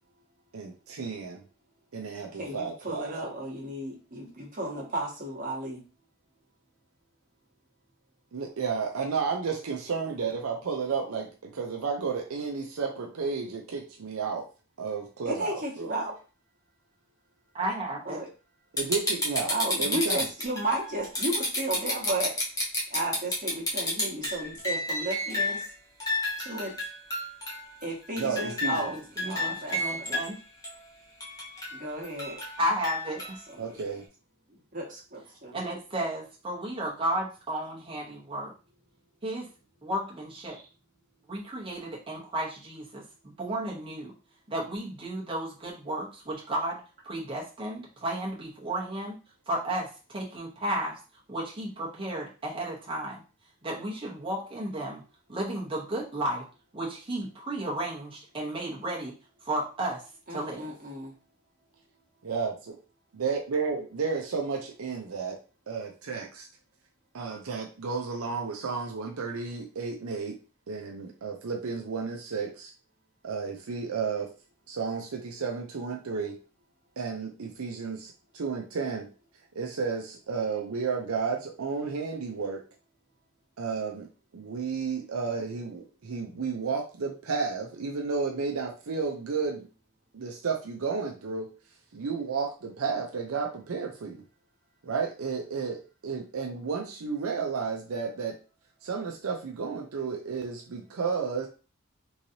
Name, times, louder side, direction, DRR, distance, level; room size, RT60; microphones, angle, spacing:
voice 1, 0.5-1.4 1.9-3.3 8.3-14.4 14.8-15.9 18.7-19.5 19.8-20.3 28.2-28.9 33.6-34.0 62.2-62.8 63.2-65.4 65.7-66.5 67.1-70.4 70.7-72.7 73.2-74.3 74.7-76.4 77.0-79.1 79.6-82.6 83.6-84.1 84.3-89.7 90.1-91.5 91.9-94.2 94.8-98.4 98.8-101.5, right 5 dB, 75° right, 2 dB, 0.6 m, -32 dB
voice 2, 2.3-5.8 15.3-16.1 18.0-18.3 19.5-22.3 22.9-25.7 26.4-26.7 27.8-30.2 31.7-32.4 33.5-33.8 34.5-35.6 60.3-61.1, right 1 dB, 40° right, -2 dB, 1.3 m, -34 dB
voice 3, 17.5-18.2 28.7-30.4 32.6-33.4 35.5-38.5 39.2-39.5 39.8-40.6 41.3-44.1 44.5-49.2 49.5-51.0 51.3-53.2 53.6-55.0 55.3-56.4 56.7-59.1 59.4-60.0 60.3-60.7, right 1 dB, 25° right, -4 dB, 1.0 m, -33 dB
sound 1, 18.8-25.7 26.0-27.8 28.2-30.3 30.6-30.7 31.2-33.4 33.8-33.9, left 1 dB, 15° left, 1.0 m, -31 dB
3.8 x 3.1 x 2.7 m, 0.35 s
head